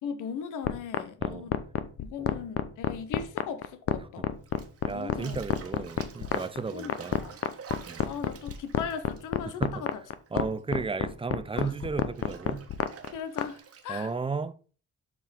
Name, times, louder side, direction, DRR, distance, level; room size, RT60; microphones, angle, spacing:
voice 1, 0.0-1.6 2.0-4.3 4.9-5.4 6.7-7.4 7.7-10.0 10.3-10.5 11.6-11.7 13.1-14.1, left 7 dB, 85° left, 0.9 m, -38 dB
sound 1, 0.6-13.5, left 9 dB, 50° left, 0.8 m, -28 dB
Bathtub (filling or washing), 4.4-10.3 10.6-14.1, right 7 dB, 50° right, 1.3 m, -49 dB
voice 2, 4.8-7.2 7.9-8.0 9.6-9.8 10.3-12.6 13.9-14.6, right 4 dB, 20° right, 0.6 m, -34 dB
7.0 x 6.0 x 3.7 m
cardioid pair, 90°, 30 cm